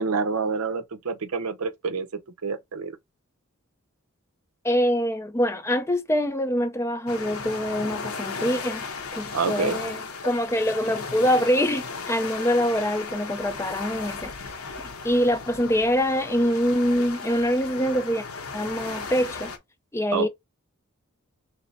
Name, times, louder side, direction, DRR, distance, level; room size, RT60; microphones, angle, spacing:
voice 1, 0.0-3.0 9.3-9.8 20.1-20.3, right 5 dB, 80° right, 0.7 m, -27 dB
voice 2, 4.6-8.8 9.1-14.3 15.0-18.2 18.5-19.5 19.9-20.3, equal, 10° left, 0.5 m, -24 dB
sound 1, 7.1-19.6, left 4 dB, 75° left, 1.0 m, -35 dB
3.2 x 3.2 x 4.0 m
head